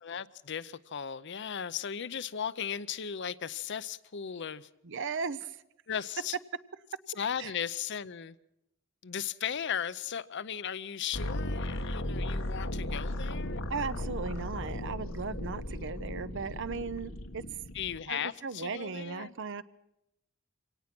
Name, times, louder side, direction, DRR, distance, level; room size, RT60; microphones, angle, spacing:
voice 1, 0.0-4.7 5.9-6.4 7.2-8.4 9.0-13.6 17.7-19.3, left 8 dB, 60° left, 0.7 m, -36 dB
voice 2, 4.8-5.6 7.4-7.5 13.7-17.4 18.1-19.6, right 5 dB, 65° right, 0.8 m, -37 dB
sound 1, 11.1-18.0, left 1 dB, 90° left, 1.5 m, -36 dB
24.5 x 18.0 x 6.0 m
head